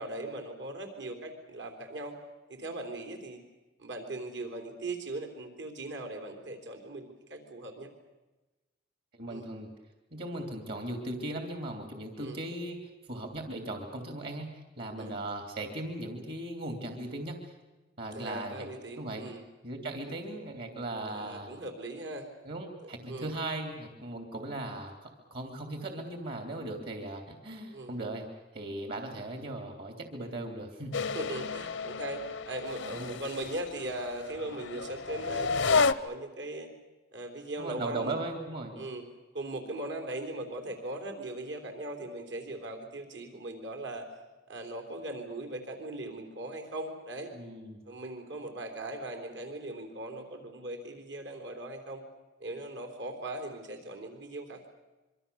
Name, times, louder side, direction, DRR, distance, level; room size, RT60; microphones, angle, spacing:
voice 1, 0.0-2.2 2.5-3.4 3.8-7.9 9.3-9.5 12.2-12.4 15.0-15.1 18.1-19.4 21.1-22.3 23.1-23.3 27.7-27.9 31.1-36.7 37.1-38.2 38.8-39.0 39.3-44.1 44.5-47.3 47.9-52.0 52.4-54.7, right 1 dB, 75° right, 5 dB, 3.7 m, -39 dB
voice 2, 9.1-9.7 10.1-12.8 13.1-17.5 18.0-18.7 19.0-19.2 19.6-21.5 22.4-28.2 28.5-30.9 32.9-33.2 37.6-38.7 47.3-47.8, right 2 dB, 60° right, 4 dB, 3.0 m, -38 dB
sound 1, 30.9-35.9, left 4 dB, 85° left, 0.9 m, -31 dB
26.0 x 24.0 x 7.0 m, 1.1 s
head